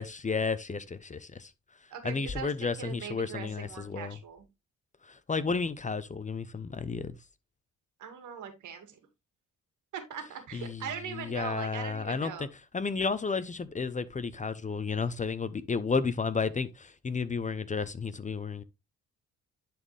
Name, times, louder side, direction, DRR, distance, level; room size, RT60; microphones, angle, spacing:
voice 1, 0.0-1.5 2.0-4.2 5.0-7.1 10.5-10.8 11.1-12.5 12.7-18.6, left 4 dB, 25° left, 0.7 m, -32 dB
voice 2, 1.9-4.5 8.0-9.0 9.9-12.5, right 7 dB, 75° right, 2.1 m, -41 dB
10.5 x 4.3 x 3.2 m
cardioid pair, 90°, 30 cm